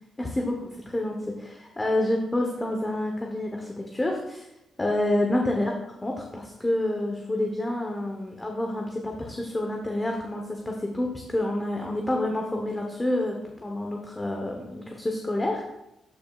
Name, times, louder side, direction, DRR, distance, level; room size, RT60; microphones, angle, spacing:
voice 1, 0.2-4.5 4.8-5.7 6.0-15.7, left 1 dB, 20° left, 1 dB, 1.0 m, -28 dB
12.0 x 5.1 x 2.4 m, 0.91 s
cardioid pair, 85°, 0 cm